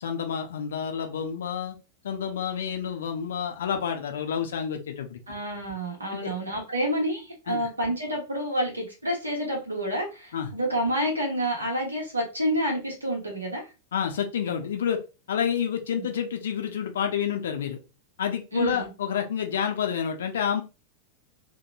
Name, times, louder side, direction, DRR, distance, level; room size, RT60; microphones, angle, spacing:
voice 1, 0.0-1.8 2.0-5.2 6.1-6.3 7.5-7.7 10.3-10.5 13.9-15.0 15.3-17.8 18.2-20.6, left 8 dB, 65° left, 4 dB, 0.4 m, -29 dB
voice 2, 5.3-13.7 15.9-16.1 18.5-18.9, equal, 80° right, 0 dB, 1.0 m, -29 dB
2.9 x 2.2 x 2.2 m, 0.30 s
figure-of-eight pair, 90°, 0 cm